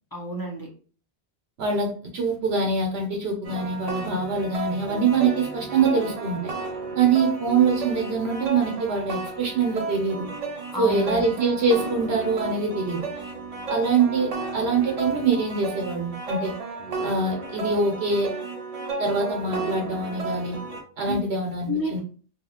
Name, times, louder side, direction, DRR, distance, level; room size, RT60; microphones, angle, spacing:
voice 1, 0.1-0.7 10.7-11.2 21.1-21.2 21.7-22.0, left 2 dB, 25° left, -1 dB, 0.5 m, -29 dB
voice 2, 1.6-6.5 6.9-10.3 10.8-13.1 13.7-16.5 17.0-18.3 19.0-20.6 21.0-22.0, right 4 dB, 75° right, 1 dB, 1.0 m, -24 dB
sound 1, 3.4-20.8, right 3 dB, 45° right, 0.6 m, -33 dB
2.7 x 2.4 x 2.8 m, 0.40 s
omnidirectional pair, 1.1 m